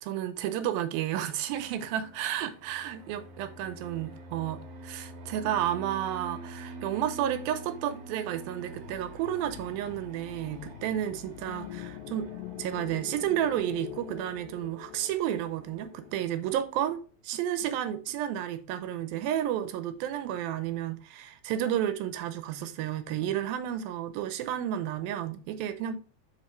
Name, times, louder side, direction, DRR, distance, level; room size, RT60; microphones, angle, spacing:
voice 1, 0.0-12.3 12.6-25.9, right 11 dB, 90° right, 2.6 m, -32 dB
Fixed-wing aircraft airplane, 1.4-16.6, right 2 dB, 55° right, 2.2 m, -47 dB
sound 1, 8.6-16.9, left 15 dB, 90° left, 2.3 m, -45 dB
7.6 x 5.3 x 3.1 m
omnidirectional pair, 4.1 m